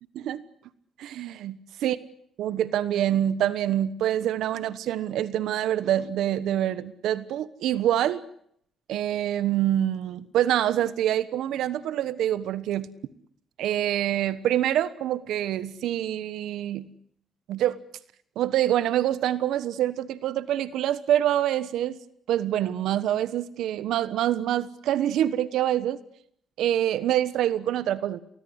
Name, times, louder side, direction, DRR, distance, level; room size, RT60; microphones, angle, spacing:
voice 1, 1.0-2.0 2.4-8.2 8.9-12.9 13.6-16.9 17.5-17.8 18.4-22.0 22.3-26.0 26.6-28.2, right 11 dB, 80° right, 15 dB, 1.2 m, -26 dB
29.5 x 19.5 x 8.1 m, 0.70 s
cardioid pair, 90°, 0 cm